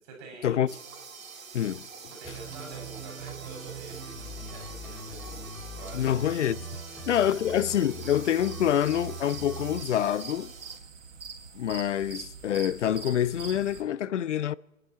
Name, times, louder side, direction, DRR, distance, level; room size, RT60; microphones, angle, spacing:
voice 1, 0.0-0.6 2.2-6.5, right 3 dB, 30° right, 5.7 m, -46 dB
sound 1, 0.7-10.8, right 5 dB, 80° right, 2.4 m, -46 dB
voice 2, 1.5-1.9 5.9-6.6 7.1-10.5 11.5-14.5, left 10 dB, 60° left, 0.5 m, -26 dB
sound 2, 2.2-9.8, right 3 dB, ahead, 2.1 m, -41 dB
sound 3, 6.3-13.8, right 5 dB, 60° right, 3.2 m, -45 dB
26.0 x 10.0 x 4.3 m
hypercardioid pair, 160°, 40 cm